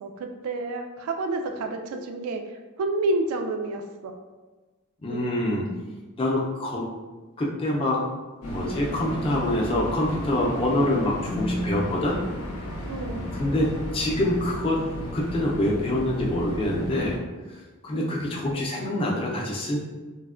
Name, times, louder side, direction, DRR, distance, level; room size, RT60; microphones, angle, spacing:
voice 1, 0.0-2.4 2.8-4.2 5.1-5.2 12.9-13.3 17.9-18.2, right 2 dB, 80° right, 6 dB, 0.3 m, -29 dB
voice 2, 5.0-5.6 6.2-6.9 7.4-8.1 8.5-12.2 13.3-14.8 15.1-17.2 17.8-19.8, left 1 dB, 25° left, -3 dB, 0.4 m, -25 dB
sound 1, 8.4-17.2, equal, 85° left, 0.6 m, -33 dB
3.2 x 2.1 x 2.4 m, 1.3 s
head